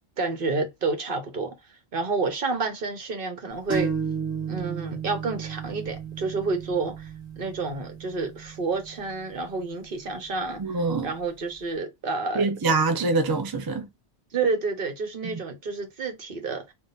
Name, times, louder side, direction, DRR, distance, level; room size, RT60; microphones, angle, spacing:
voice 1, 0.2-1.5 1.9-3.9 4.5-7.1 7.4-10.6 11.0-12.5 14.3-16.7, right 4 dB, 55° right, 1.1 m, -29 dB
sound 1, 3.7-11.2, right 6 dB, 5° right, 1.9 m, -34 dB
voice 2, 10.6-11.1 12.3-13.9 15.2-15.4, right 3 dB, 30° right, 0.4 m, -24 dB
3.7 x 2.4 x 4.0 m
omnidirectional pair, 1.2 m